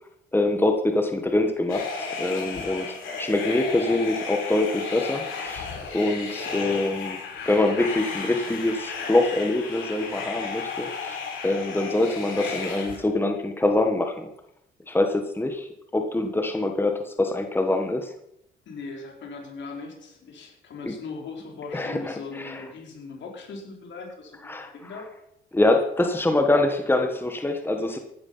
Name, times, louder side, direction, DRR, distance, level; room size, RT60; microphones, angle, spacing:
voice 1, 0.3-2.9 3.2-7.2 7.5-14.3 14.9-18.1 20.8-20.9 21.7-22.6 24.4-24.7 25.5-28.0, left 2 dB, 10° left, 5 dB, 1.6 m, -24 dB
sound 1, 1.7-13.0, left 4 dB, 85° left, 7.7 m, -34 dB
voice 2, 18.6-25.1, left 4 dB, 70° left, 1 dB, 4.9 m, -39 dB
15.5 x 11.5 x 5.7 m, 0.78 s
cardioid pair, 90°, 20 cm